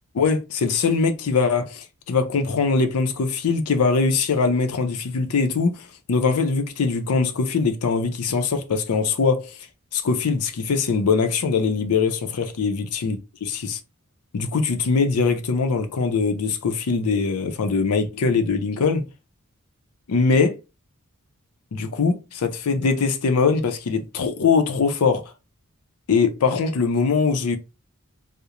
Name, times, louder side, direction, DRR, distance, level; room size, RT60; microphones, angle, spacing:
voice 1, 0.1-9.5 9.9-13.8 14.3-19.1 20.1-20.6 21.7-25.3 26.1-27.6, left 4 dB, 80° left, 0.5 m, -22 dB
2.4 x 2.0 x 2.8 m
head